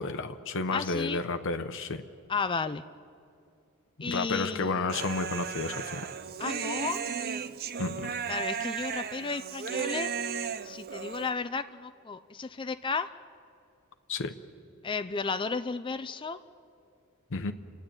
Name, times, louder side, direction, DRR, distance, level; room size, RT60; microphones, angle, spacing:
voice 1, 0.0-2.0 4.0-6.1 7.8-8.1 14.1-14.3 17.3-17.5, left 3 dB, 60° left, 7 dB, 0.8 m, -31 dB
voice 2, 0.7-1.2 2.3-2.8 4.0-4.8 6.4-7.0 8.3-10.1 10.6-13.1 14.8-16.4, left 4 dB, 20° left, 11 dB, 0.4 m, -33 dB
Human voice, 4.9-11.3, right 7 dB, 45° right, 0.6 m, -35 dB
29.5 x 10.5 x 8.8 m, 2.5 s
head